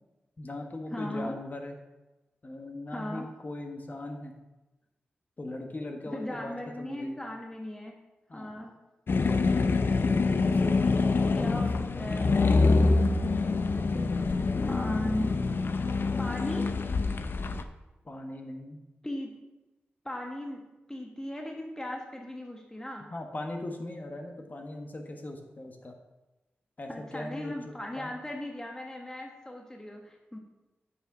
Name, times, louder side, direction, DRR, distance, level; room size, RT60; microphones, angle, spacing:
voice 1, 0.4-1.8 2.4-4.4 5.4-7.1 8.3-8.6 10.4-11.7 11.9-12.0 13.3-14.3 14.6-14.7 18.0-18.8 23.1-25.9 26.8-28.1, left 1 dB, 45° left, 3 dB, 1.3 m, -40 dB
voice 2, 0.9-1.4 2.9-3.3 6.1-8.0 8.3-8.8 11.4-12.6 13.9-14.2 14.7-15.5 16.2-16.8 19.0-19.4 20.0-23.1 26.9-30.4, left 1 dB, 15° left, 1 dB, 1.4 m, -37 dB
sound 1, 9.1-17.6, left 3 dB, 60° left, 0.5 m, -25 dB
9.3 x 6.0 x 3.9 m, 1.1 s
cardioid pair, 50°, 4 cm